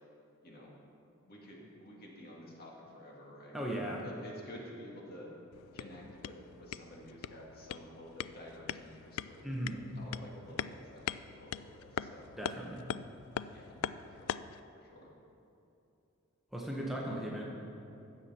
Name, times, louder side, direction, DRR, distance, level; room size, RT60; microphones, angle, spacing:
voice 1, 1.2-5.3 5.7-12.3 13.5-14.4 14.7-15.1, equal, 50° left, -2 dB, 2.0 m, -51 dB
voice 2, 3.5-4.0 9.4-9.8 12.4-12.9 16.5-17.4, right 1 dB, ahead, -3 dB, 1.0 m, -37 dB
sound 1, 5.5-14.6, left 9 dB, 90° left, 0.3 m, -42 dB
15.5 x 7.0 x 4.3 m, 2.9 s
head